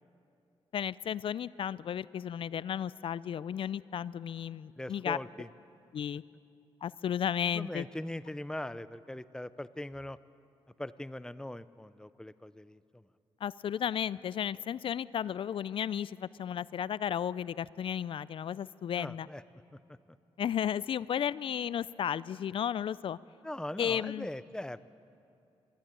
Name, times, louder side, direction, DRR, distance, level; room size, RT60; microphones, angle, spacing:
voice 1, 0.7-5.2 5.9-6.2 6.8-7.8 13.4-19.3 20.4-23.2 23.8-24.3, left 9 dB, 60° left, 20 dB, 0.4 m, -34 dB
voice 2, 4.8-5.5 7.5-10.2 10.8-12.8 19.0-19.4 23.4-24.8, left 1 dB, 5° left, 16 dB, 0.5 m, -40 dB
22.5 x 13.5 x 8.9 m, 2.7 s
cardioid pair, 90°, 10 cm